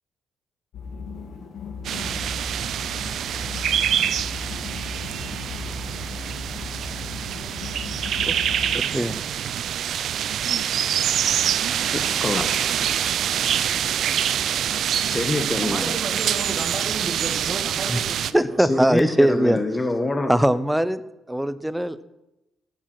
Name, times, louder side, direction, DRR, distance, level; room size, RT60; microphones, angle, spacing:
sound 1, 0.7-8.8, left 4 dB, 75° left, 2.3 m, -36 dB
sound 2, 1.8-18.3, right 9 dB, 70° right, 0.6 m, -25 dB
voice 1, 8.7-9.3 17.9-18.0 18.3-19.6 20.3-21.0 21.3-22.1, right 1 dB, 5° right, 15 dB, 0.8 m, -21 dB
voice 2, 11.9-13.7 15.0-15.9 18.6-20.3, left 2 dB, 20° left, 6 dB, 1.3 m, -27 dB
voice 3, 15.6-18.8 19.1-19.2, right 4 dB, 45° right, 5 dB, 1.8 m, -33 dB
16.0 x 7.4 x 7.8 m, 0.95 s
cardioid pair, 90°, 0 cm